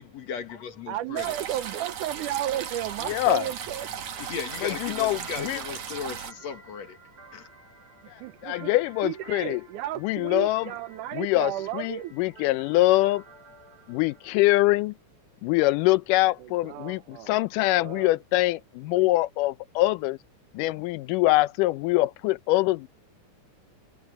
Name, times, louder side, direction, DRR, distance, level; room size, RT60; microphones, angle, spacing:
voice 1, 0.0-1.3 4.2-7.0 7.3-7.5, left 7 dB, 60° left, 2.7 m, -36 dB
voice 2, 0.9-4.0 5.0-5.5 8.2-8.7 9.0-12.1 16.4-17.4 17.8-18.2 18.9-19.1, right 13 dB, 80° right, 2.3 m, -34 dB
sound 1, 1.2-6.3, right 8 dB, 65° right, 3.2 m, -36 dB
voice 3, 3.1-3.4 4.6-5.6 8.4-9.6 10.0-10.6 11.1-11.5 11.8-13.2 13.9-14.9 15.4-17.0 17.3-20.2 20.5-22.9, left 18 dB, 90° left, 2.2 m, -24 dB
sound 2, 3.7-14.4, right 3 dB, 40° right, 7.1 m, -52 dB
omnidirectional pair, 3.7 m